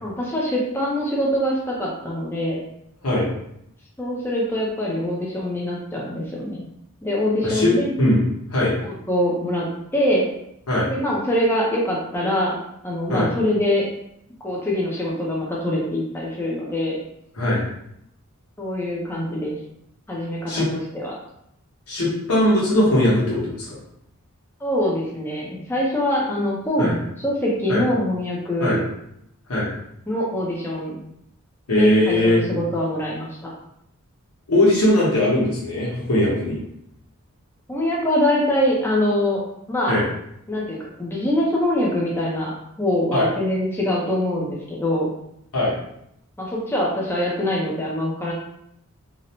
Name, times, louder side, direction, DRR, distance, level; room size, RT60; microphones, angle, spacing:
voice 1, 0.0-2.6 4.0-6.6 7.0-8.0 9.1-9.7 9.9-10.3 10.9-12.6 12.8-13.9 14.4-17.0 18.6-19.5 20.1-21.2 24.6-28.8 30.1-31.0 31.8-33.5 37.7-39.4 39.7-40.0 40.5-45.1 46.4-48.3, left 1 dB, 10° left, -4 dB, 0.4 m, -24 dB
voice 2, 7.4-8.2 8.5-8.8 10.7-10.9 13.1-13.3 17.4-17.6 20.5-20.7 21.9-23.8 26.8-26.9 27.7-27.8 28.6-28.8 29.5-29.7 31.7-32.4 34.5-36.6 39.9-40.0 43.1-43.3 45.5-45.8, left 1 dB, 85° left, -5 dB, 1.0 m, -19 dB
2.6 x 2.0 x 2.8 m, 0.76 s
head